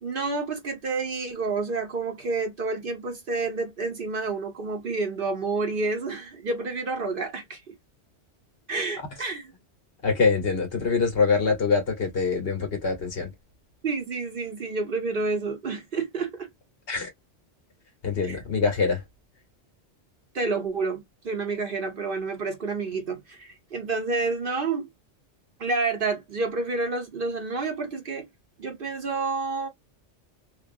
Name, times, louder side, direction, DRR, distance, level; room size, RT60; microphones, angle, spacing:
voice 1, 0.0-7.6 8.7-9.4 13.8-16.5 18.2-18.4 20.3-24.9 25.6-28.3 28.6-29.7, right 3 dB, 50° right, 1.0 m, -29 dB
voice 2, 10.0-13.3 16.9-17.1 18.0-19.0, left 4 dB, 55° left, 1.4 m, -24 dB
3.0 x 2.5 x 2.5 m
omnidirectional pair, 1.2 m